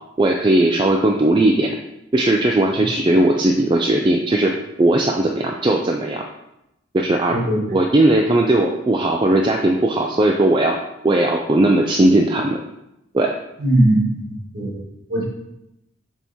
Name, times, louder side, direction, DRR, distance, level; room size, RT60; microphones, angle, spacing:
voice 1, 0.2-1.7 2.1-6.2 6.9-7.4 7.7-10.8 11.0-12.6 13.1-13.3, right 1 dB, 25° right, 1 dB, 0.3 m, -17 dB
voice 2, 7.3-7.8 13.6-14.7 15.1-15.2, right 1 dB, 50° right, -5 dB, 1.9 m, -19 dB
7.1 x 3.5 x 4.2 m, 0.88 s
head